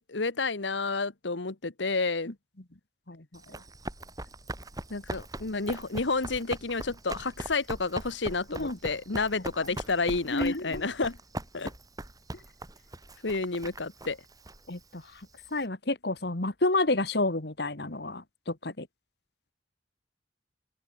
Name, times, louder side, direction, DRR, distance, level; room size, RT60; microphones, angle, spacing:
voice 1, 0.0-2.3 4.9-11.2 11.5-11.7 13.2-14.2, left 3 dB, 80° left, 1.4 m, -30 dB
voice 2, 3.1-3.6 8.5-8.8 10.3-10.9 14.7-18.9, left 2 dB, 60° left, 2.0 m, -30 dB
Run, 3.3-15.6, right 1 dB, 20° right, 6.1 m, -41 dB
open air
head